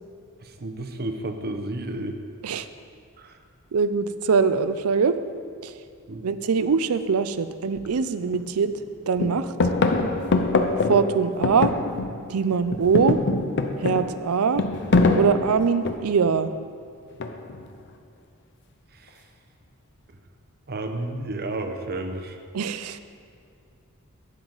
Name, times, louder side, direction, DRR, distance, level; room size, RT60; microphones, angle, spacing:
voice 1, 0.4-2.2 3.2-3.4 6.1-6.2 19.0-19.2 20.7-22.4, right 2 dB, 45° right, 6 dB, 0.8 m, -32 dB
voice 2, 3.7-5.2 5.6-5.7 6.2-8.7 9.1-9.5 10.9-11.7 12.3-13.2 13.8-14.6 15.1-16.5 22.5-23.0, right 5 dB, 80° right, 12 dB, 0.5 m, -22 dB
sound 1, 7.8-7.9 8.3-8.9 9.2-12.3 12.6-16.2 17.2-17.7, left 3 dB, 55° left, 0.7 m, -24 dB
11.5 x 9.0 x 4.0 m, 2.4 s
head